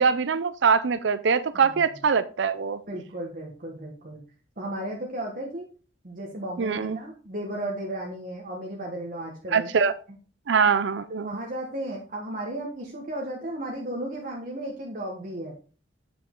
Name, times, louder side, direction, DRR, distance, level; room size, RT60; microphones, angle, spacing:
voice 1, 0.0-2.8 6.6-7.0 9.5-9.9 10.5-11.3, right 5 dB, 65° right, 0.5 m, -23 dB
voice 2, 1.5-1.9 2.9-4.2 4.6-5.7 6.0-9.7 11.1-15.5, right 1 dB, 45° right, 1.3 m, -34 dB
8.4 x 5.2 x 3.7 m
head